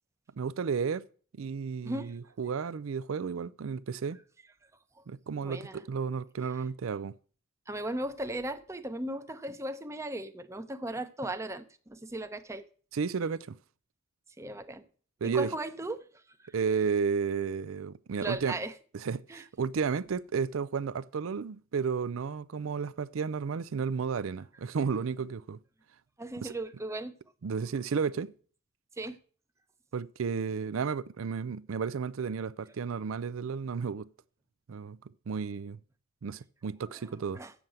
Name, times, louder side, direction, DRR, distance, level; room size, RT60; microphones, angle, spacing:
voice 1, 0.4-1.0 1.4-4.2 5.1-7.1 12.9-13.5 15.2-15.5 16.5-18.6 19.0-25.6 26.4-26.5 27.4-28.3 29.9-34.1 34.7-35.0 35.3-35.8 36.2-37.4, right 6 dB, 75° right, 0.5 m, -32 dB
voice 2, 1.8-2.1 5.4-5.9 7.7-12.6 14.4-14.8 15.2-16.0 16.4-16.5 18.2-18.7 19.3-19.4 26.2-27.2 29.0-29.2 36.9-37.1 37.3-37.5, right 1 dB, 15° right, 0.7 m, -37 dB
7.4 x 7.2 x 7.9 m
head